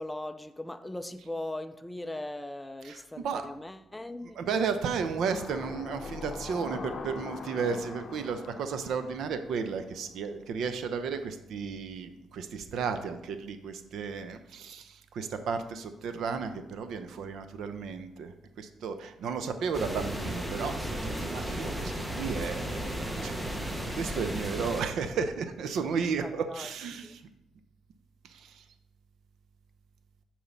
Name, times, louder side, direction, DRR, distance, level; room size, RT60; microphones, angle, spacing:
voice 1, 0.0-4.4 26.2-26.7 27.0-27.1, left 1 dB, 10° left, 0.5 m, -39 dB
voice 2, 2.8-3.5 4.4-20.7 21.0-23.4 23.9-27.2 28.2-28.6, right 5 dB, 75° right, 0.7 m, -33 dB
sound 1, 5.3-10.2 10.6-10.7, left 4 dB, 45° left, 0.8 m, -42 dB
sound 2, 19.7-24.8, right 1 dB, 10° right, 1.0 m, -34 dB
7.0 x 4.7 x 5.5 m
cardioid pair, 90°, 0 cm